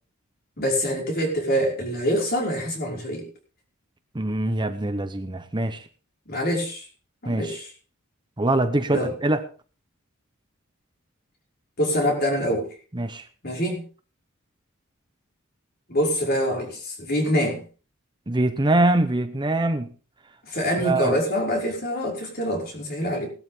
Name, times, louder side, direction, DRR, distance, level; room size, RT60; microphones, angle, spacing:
voice 1, 0.6-3.2 6.3-6.8 7.2-7.7 8.9-9.1 11.8-12.7 13.4-13.8 15.9-17.6 20.4-23.3, equal, 45° left, 5.4 m, -25 dB
voice 2, 4.1-5.8 7.3-7.6 8.4-9.4 12.9-13.2 18.3-19.9 20.8-21.2, right 2 dB, 20° right, 0.8 m, -23 dB
18.5 x 12.5 x 3.8 m
head